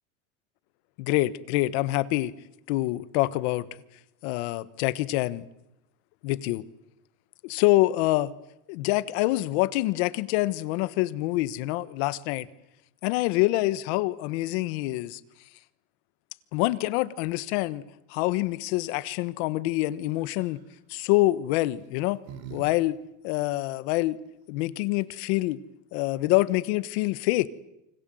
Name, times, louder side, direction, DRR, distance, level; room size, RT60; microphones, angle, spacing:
voice 1, 1.0-2.3 2.7-3.7 4.2-5.5 6.2-6.6 7.4-8.3 8.7-12.5 13.0-15.2 16.5-17.8 18.1-20.6 20.9-22.2 22.5-23.0 23.2-24.2 24.5-25.6 25.9-27.5, left 18 dB, 80° left, 1.3 m, -26 dB
sound 1, 20.2-20.6 21.6-22.7 22.9-23.0 24.7-24.8 25.0-25.4, right 9 dB, 90° right, 3.4 m, -45 dB
29.5 x 25.0 x 7.8 m
cardioid pair, 145°, 32 cm